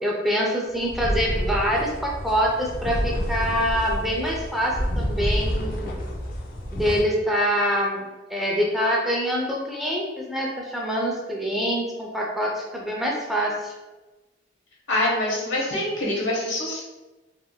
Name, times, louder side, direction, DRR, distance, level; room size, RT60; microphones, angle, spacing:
voice 1, 0.0-6.2 6.7-8.0 8.3-13.7, equal, ahead, -3 dB, 0.4 m, -25 dB
sound 1, 0.7-7.0, equal, 50° left, 0.6 m, -28 dB
voice 2, 14.9-16.8, left 1 dB, 85° left, -3 dB, 1.0 m, -25 dB
3.3 x 2.5 x 2.2 m, 1.1 s
head